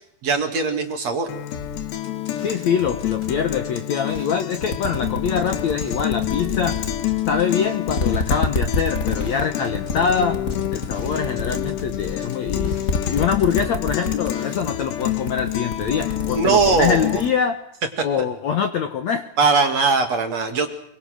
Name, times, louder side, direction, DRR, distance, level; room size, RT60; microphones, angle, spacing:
voice 1, 0.2-1.3 16.4-17.2 19.4-20.7, right 4 dB, 45° right, 6 dB, 2.9 m, -20 dB
Guitar, 1.3-17.3, left 13 dB, 90° left, 3.6 m, -28 dB
sound 1, 1.5-4.6 4.8-11.4 11.7-15.2, left 1 dB, 20° left, 4.5 m, -39 dB
voice 2, 2.4-6.8 7.3-10.4 10.7-12.7 13.1-17.6 18.0-19.3, left 7 dB, 65° left, 8 dB, 1.9 m, -24 dB
sound 2, 4.1-4.2 4.6-7.5 7.9-14.3 14.5-14.8 15.1-17.3, left 3 dB, 40° left, 1.2 m, -27 dB
26.5 x 24.0 x 6.5 m, 0.72 s
omnidirectional pair, 4.7 m